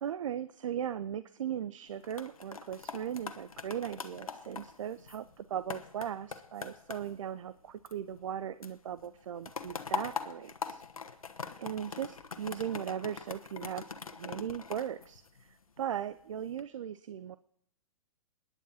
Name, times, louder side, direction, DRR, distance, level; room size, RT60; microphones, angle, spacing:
voice 1, 0.0-10.8 11.6-13.9 14.1-15.2 15.5-17.4, right 9 dB, 65° right, 14 dB, 0.6 m, -38 dB
sound 1, 1.9-8.4 8.6-15.8 16.3-16.6, left 5 dB, 85° left, 1.2 m, -43 dB
28.5 x 10.0 x 4.2 m, 0.68 s
hypercardioid pair, 125°, 17 cm